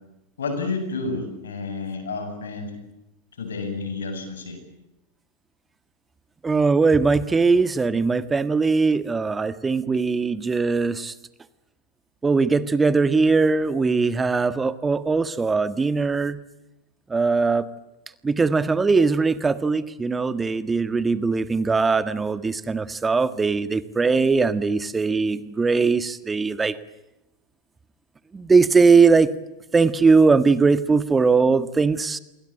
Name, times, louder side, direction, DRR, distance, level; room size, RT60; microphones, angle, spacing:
voice 1, 0.4-2.7 3.4-4.6, left 3 dB, 85° left, 8 dB, 7.9 m, -30 dB
voice 2, 6.4-11.1 12.2-16.4 17.1-17.7 18.2-26.8 28.3-29.3 29.7-32.2, right 4 dB, 15° right, 14 dB, 1.6 m, -20 dB
29.0 x 22.5 x 8.8 m, 0.90 s
hypercardioid pair, 95°, 0 cm